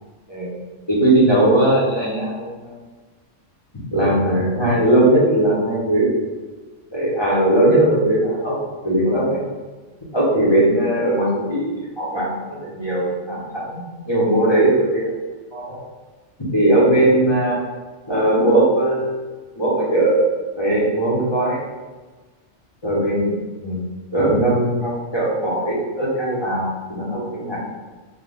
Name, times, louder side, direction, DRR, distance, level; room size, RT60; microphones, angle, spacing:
voice 1, 0.9-2.8 3.9-6.1 6.9-8.6 8.8-9.4 10.1-15.1 15.5-15.8 16.5-17.6 18.1-19.2 19.6-20.2 20.6-21.6 22.8-23.8 24.1-27.6, right 1 dB, 20° left, -8 dB, 1.3 m, -19 dB
3.6 x 3.3 x 3.6 m, 1.3 s
omnidirectional pair, 1.3 m